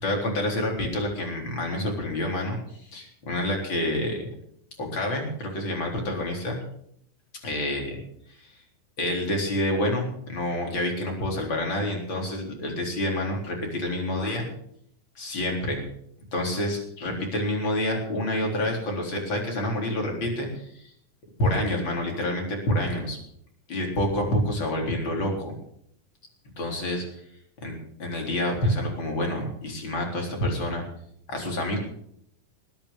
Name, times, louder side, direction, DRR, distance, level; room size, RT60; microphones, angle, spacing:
voice 1, 0.0-4.2 4.8-6.6 7.4-8.0 8.4-8.5 9.0-14.5 15.2-15.8 16.3-20.9 21.4-23.2 23.7-25.5 26.6-27.0 27.6-27.7 28.0-30.8 31.3-31.8, left 1 dB, 30° left, 1 dB, 4.5 m, -28 dB
20.5 x 8.8 x 7.2 m, 0.68 s
omnidirectional pair, 4.3 m